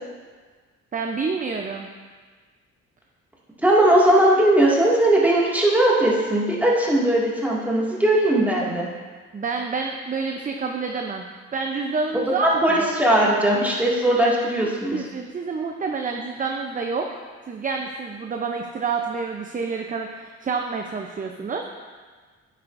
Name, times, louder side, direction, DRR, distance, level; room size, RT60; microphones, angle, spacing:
voice 1, 0.9-1.9 9.3-11.3 11.5-12.9 14.6-17.2 17.5-21.6, right 4 dB, 25° right, 3 dB, 0.6 m, -28 dB
voice 2, 3.6-8.9 12.1-15.0, right 1 dB, 5° right, -5 dB, 2.0 m, -19 dB
9.7 x 7.5 x 2.6 m, 1.5 s
cardioid pair, 90°, 30 cm